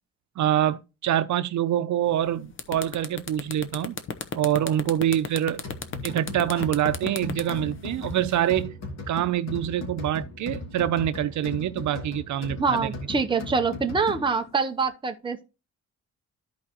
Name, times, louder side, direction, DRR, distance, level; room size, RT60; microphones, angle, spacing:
voice 1, 0.4-4.0 4.3-5.6 6.0-8.7 9.1-12.9, right 11 dB, 75° right, 0.6 m, -25 dB
sound 1, 2.1-2.2 2.5-8.6, left 6 dB, 40° left, 0.9 m, -34 dB
sound 2, 5.6-14.5, left 2 dB, 65° left, 2.5 m, -38 dB
voice 2, 12.6-15.5, right 4 dB, 15° right, 0.7 m, -25 dB
13.5 x 4.8 x 2.9 m
wide cardioid pair, 175°, 30 cm